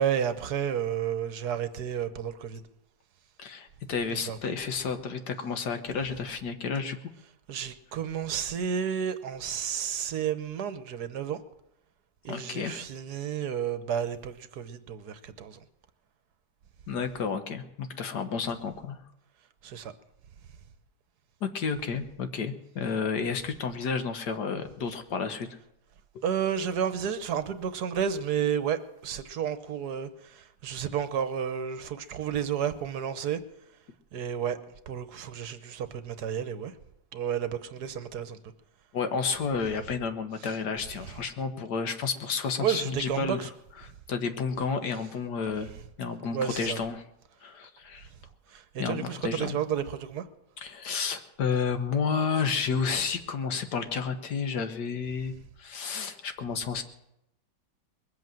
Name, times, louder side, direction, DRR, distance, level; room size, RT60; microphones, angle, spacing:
voice 1, 0.0-2.6 4.1-4.4 7.5-11.4 12.2-15.6 19.6-19.9 26.2-33.4 34.1-34.6 34.9-36.7 37.1-38.4 42.6-43.5 46.3-46.8 48.5-50.2, right 8 dB, 70° right, 1.4 m, -31 dB
voice 2, 3.4-7.0 12.3-12.8 16.9-19.0 21.4-25.5 38.9-43.5 43.8-45.7 46.0-47.0 47.4-48.1 48.8-49.6 50.6-56.8, left 5 dB, 75° left, 1.8 m, -31 dB
21.0 x 8.1 x 7.6 m
omnidirectional pair, 1.8 m